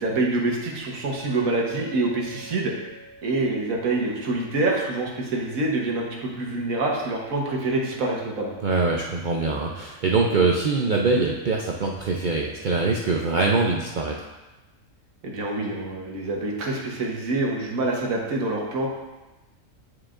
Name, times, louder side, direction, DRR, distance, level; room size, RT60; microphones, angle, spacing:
voice 1, 0.0-2.7 3.2-8.5 15.2-18.9, right 2 dB, 80° right, -1 dB, 1.5 m, -26 dB
Chink clink, 1.2-5.6, right 2 dB, 5° right, 1.6 m, -46 dB
voice 2, 8.6-14.3, right 3 dB, 65° right, -1 dB, 0.4 m, -23 dB
9.5 x 4.7 x 2.5 m, 1.1 s
omnidirectional pair, 1.4 m